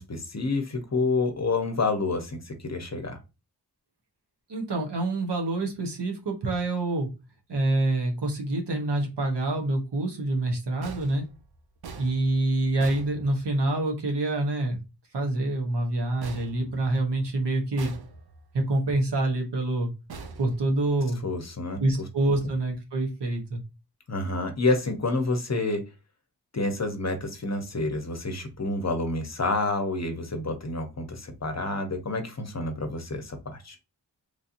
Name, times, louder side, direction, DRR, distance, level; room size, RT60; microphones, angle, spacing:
voice 1, 0.0-3.2 21.2-21.8 24.1-25.9 26.5-33.8, left 3 dB, 40° left, 6 dB, 0.7 m, -28 dB
voice 2, 4.5-7.1 7.5-11.2 12.0-14.8 15.1-17.9 18.5-19.9 20.4-21.2 21.8-23.6, right 2 dB, 90° right, 2 dB, 1.0 m, -26 dB
sound 1, 10.8-13.9 16.2-17.3 17.8-18.6 20.1-21.2, right 4 dB, 65° right, 0.6 m, -44 dB
3.2 x 2.7 x 2.5 m, 0.27 s
wide cardioid pair, 75°, 41 cm